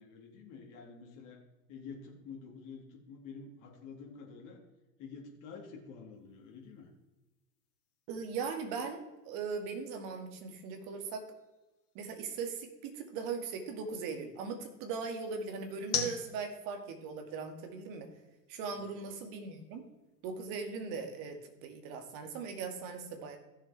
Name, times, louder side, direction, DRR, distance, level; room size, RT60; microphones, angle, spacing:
voice 1, 0.0-1.4 1.7-4.6 5.0-6.9 18.7-19.1, left 5 dB, 40° left, 0 dB, 2.3 m, -49 dB
sound 1, 6.1-20.4, left 8 dB, 65° left, 2.4 m, -47 dB
voice 2, 8.1-11.2 11.9-18.1 18.5-19.8 20.2-23.4, right 5 dB, 45° right, 5 dB, 2.2 m, -39 dB
15.5 x 7.2 x 3.4 m, 1.1 s
hypercardioid pair, 120°, 49 cm